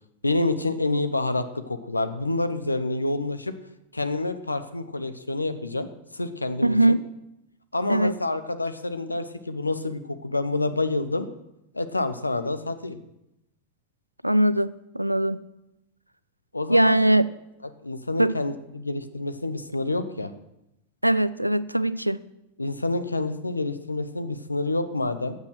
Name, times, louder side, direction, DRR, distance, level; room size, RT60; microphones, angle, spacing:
voice 1, 0.2-3.5 3.9-7.0 7.7-11.3 11.7-13.0 16.5-17.0 17.8-20.3 22.6-25.4, left 2 dB, 80° left, 11 dB, 0.9 m, -28 dB
voice 2, 6.6-7.0 7.9-8.1 14.2-15.4 16.7-17.3 18.2-18.3 21.0-22.2, right 1 dB, 90° right, 17 dB, 0.4 m, -21 dB
13.5 x 8.6 x 6.2 m, 0.88 s
figure-of-eight pair, 90°, 0 cm